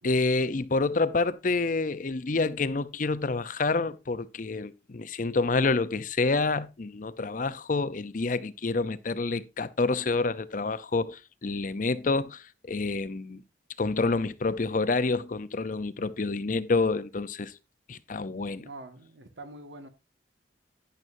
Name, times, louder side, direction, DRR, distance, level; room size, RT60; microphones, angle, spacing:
voice 1, 0.0-13.4 13.8-17.5 17.9-18.7, left 3 dB, 45° left, 0.6 m, -28 dB
voice 2, 18.6-19.9, right 2 dB, 85° right, 1.8 m, -45 dB
11.0 x 10.5 x 2.7 m
head